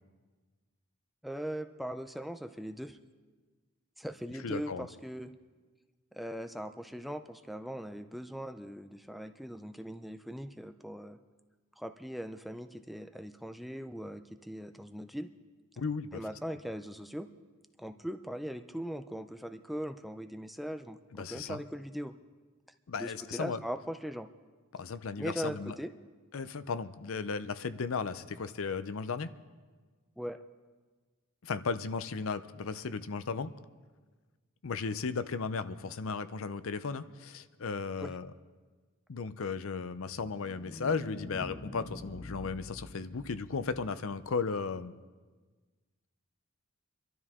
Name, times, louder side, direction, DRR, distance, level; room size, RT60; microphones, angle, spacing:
voice 1, 1.2-3.0 4.0-5.3 6.1-11.2 11.8-15.3 16.1-17.3 17.8-22.1 23.0-24.3 25.2-25.9 30.2-30.4 38.0-38.1, equal, ahead, 8 dB, 0.4 m, -40 dB
voice 2, 4.4-4.9 15.8-16.2 21.1-21.6 22.9-23.6 24.7-25.7 26.3-29.3 31.4-33.5 34.6-38.3 39.1-44.9, left 5 dB, 65° left, 13 dB, 0.6 m, -35 dB
sound 1, 40.0-44.3, left 1 dB, 25° left, 0.9 m, -46 dB
25.5 x 12.5 x 3.6 m, 1.4 s
head